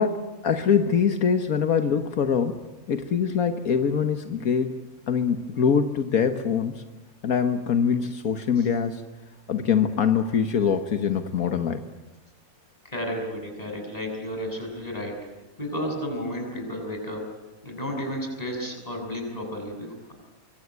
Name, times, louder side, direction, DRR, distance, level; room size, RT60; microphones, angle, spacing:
voice 1, 0.0-4.7 5.1-6.8 7.2-9.0 9.5-11.8, left 7 dB, 80° left, 7 dB, 1.7 m, -24 dB
voice 2, 12.8-15.2 15.6-17.3 17.6-20.1, equal, 25° left, 2 dB, 7.1 m, -32 dB
25.0 x 24.0 x 9.4 m, 1.1 s
omnidirectional pair, 1.5 m